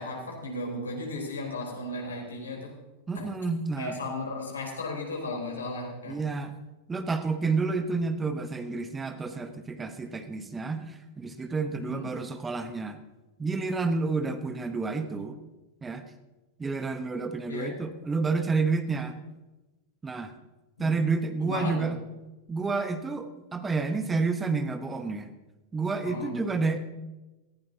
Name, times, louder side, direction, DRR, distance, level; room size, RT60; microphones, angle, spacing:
voice 1, 0.0-2.7 3.2-3.3 3.8-6.2 11.7-12.1 15.0-15.2 17.5-17.7 20.8-20.9 21.4-21.9 26.0-26.3, left 2 dB, 70° left, -1 dB, 3.8 m, -35 dB
voice 2, 3.1-3.9 6.1-6.5 6.9-13.0 13.4-15.3 15.8-16.0 16.6-19.2 20.0-20.3 20.8-22.0 22.5-25.3 25.7-26.8, right 4 dB, 15° right, 9 dB, 0.9 m, -29 dB
18.0 x 15.5 x 2.8 m, 1.1 s
figure-of-eight pair, 90°, 0 cm